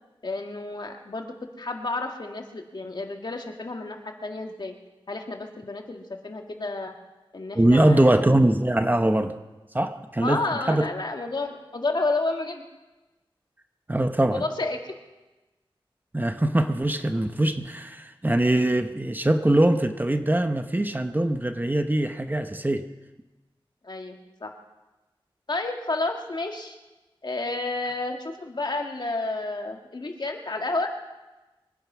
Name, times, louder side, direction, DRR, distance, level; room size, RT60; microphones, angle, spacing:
voice 1, 0.2-4.8 5.1-6.9 7.3-8.2 10.2-12.6 14.3-15.0 23.8-24.5 25.5-26.8 27.2-30.9, left 2 dB, 50° left, 3 dB, 1.9 m, -31 dB
voice 2, 7.5-9.3 9.7-10.9 13.9-14.4 16.1-22.8, right 1 dB, 20° right, 7 dB, 0.9 m, -22 dB
23.0 x 10.0 x 6.1 m, 1.1 s
wide cardioid pair, 90°, 9 cm